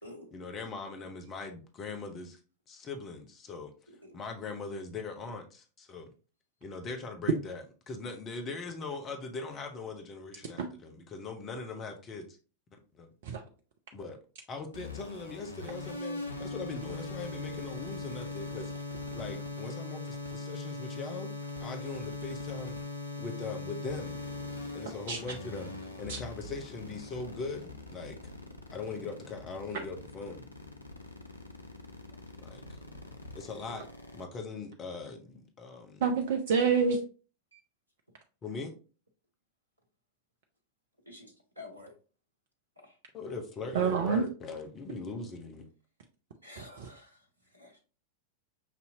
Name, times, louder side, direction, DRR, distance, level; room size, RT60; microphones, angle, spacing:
voice 1, 0.3-2.4 2.7-3.7 4.1-6.1 6.6-12.4 13.0-13.1 13.9-14.2 14.5-18.7 19.1-21.3 21.6-22.8 23.2-24.2 24.7-28.2 28.7-30.5 32.4-32.8 33.3-33.9 34.1-36.0 38.4-38.7 43.1-45.7, left 4 dB, 25° left, 5 dB, 0.8 m, -40 dB
voice 2, 3.9-4.2 37.5-37.6 41.1-41.9 42.8-42.9 46.4-47.2 47.5-47.8, left 2 dB, 85° right, 2 dB, 0.8 m, -49 dB
sound 1, 14.7-34.2, left 3 dB, 85° left, 0.7 m, -41 dB
voice 3, 36.0-37.0 43.7-44.2 46.8-46.9, right 5 dB, 55° right, 3 dB, 0.5 m, -27 dB
5.9 x 2.7 x 2.7 m, 0.36 s
figure-of-eight pair, 90°, 0 cm